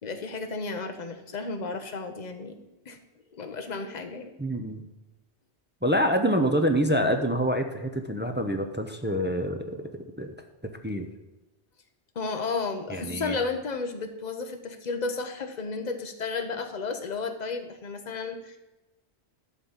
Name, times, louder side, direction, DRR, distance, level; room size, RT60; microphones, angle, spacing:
voice 1, 0.0-3.0 3.3-4.4 12.1-18.6, left 4 dB, 40° left, 5 dB, 1.0 m, -33 dB
voice 2, 4.4-4.8 5.8-10.3 10.8-11.1 12.9-13.4, equal, 10° right, 5 dB, 0.6 m, -26 dB
11.5 x 4.0 x 7.3 m, 1.0 s
omnidirectional pair, 1.1 m